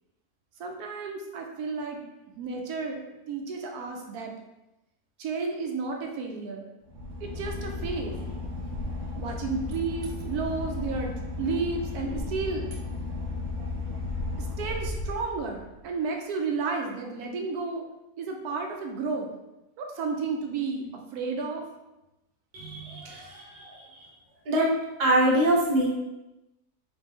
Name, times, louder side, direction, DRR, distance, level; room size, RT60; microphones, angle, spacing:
voice 1, 0.6-2.0 2.4-4.3 5.2-6.7 7.2-8.2 9.2-11.1 11.4-12.7 14.4-17.9 18.2-19.3 19.8-20.8 21.1-21.6, right 4 dB, 85° right, 1 dB, 1.2 m, -32 dB
Boat Water vehicle / Engine, 6.8-15.8, left 2 dB, 60° right, 1.1 m, -34 dB
voice 2, 22.5-24.1 24.5-24.7 25.0-25.9, right 1 dB, 40° right, -3 dB, 0.8 m, -25 dB
3.6 x 3.2 x 3.3 m, 0.96 s
omnidirectional pair, 1.6 m